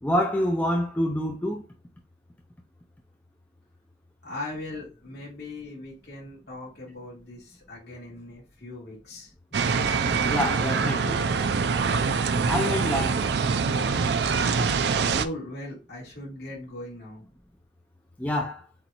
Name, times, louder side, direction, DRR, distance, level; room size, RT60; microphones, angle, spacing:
voice 1, 0.0-1.7 10.2-11.2 12.5-13.4 18.2-18.6, left 1 dB, 10° left, 0.4 m, -27 dB
voice 2, 4.2-9.3 15.1-17.2, left 2 dB, 60° left, 2.6 m, -39 dB
sound 1, 9.5-15.3, right 5 dB, 60° right, 0.4 m, -24 dB
6.9 x 2.6 x 2.9 m
head